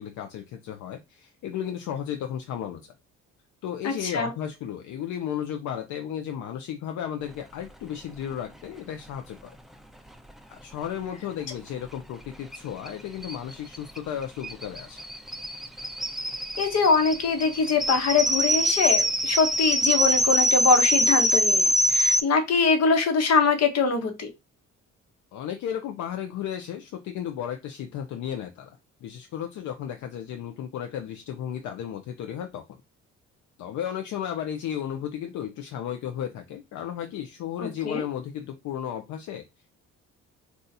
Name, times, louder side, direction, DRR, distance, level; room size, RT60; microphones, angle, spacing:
voice 1, 0.0-2.9 3.6-9.5 10.5-15.0 25.3-32.6 33.6-39.4, left 9 dB, 75° left, 5 dB, 0.5 m, -34 dB
voice 2, 3.8-4.3 16.6-24.3 37.6-38.0, left 4 dB, 55° left, 6 dB, 1.0 m, -23 dB
sound 1, 12.5-12.6 12.9-13.0 13.2-22.2, equal, ahead, 0.3 m, -24 dB
2.7 x 2.4 x 3.9 m, 0.23 s
cardioid pair, 90°, 30 cm